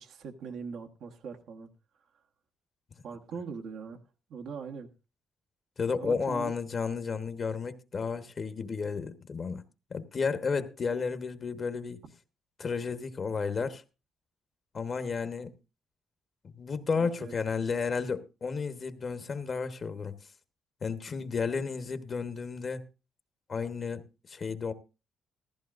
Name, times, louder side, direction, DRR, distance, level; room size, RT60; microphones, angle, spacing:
voice 1, 0.0-1.7 3.0-4.0 4.3-4.9 6.0-6.5 17.0-17.3, right 5 dB, 75° right, 1.3 m, -41 dB
voice 2, 5.8-9.6 9.9-12.0 12.6-13.8 14.7-15.5 16.6-20.2 20.8-22.8 23.5-24.7, left 5 dB, 45° left, 1.1 m, -32 dB
15.0 x 14.0 x 2.5 m
cardioid pair, 90°, 0 cm